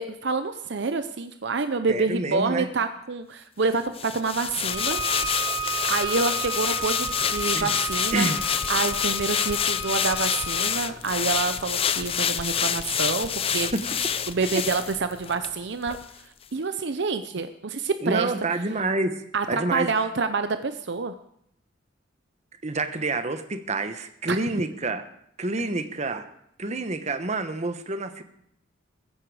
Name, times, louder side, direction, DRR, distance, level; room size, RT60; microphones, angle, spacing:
voice 1, 0.0-5.0 5.7-8.3 8.7-13.7 14.3-16.0 16.5-18.3 19.3-21.1 24.3-24.4, right 4 dB, 60° right, 10 dB, 0.7 m, -27 dB
voice 2, 1.9-2.7 7.5-7.7 8.1-8.4 13.7-13.9 14.5-14.6 18.0-19.9 22.6-25.1 25.4-26.3 26.6-28.2, right 2 dB, 35° right, 9 dB, 1.0 m, -28 dB
sound 1, 4.0-15.5 15.9-16.0, left 8 dB, 30° left, 0.6 m, -27 dB
Bowed string instrument, 4.7-10.7, right 2 dB, 75° left, 5.8 m, -33 dB
15.5 x 15.5 x 4.9 m, 0.74 s
head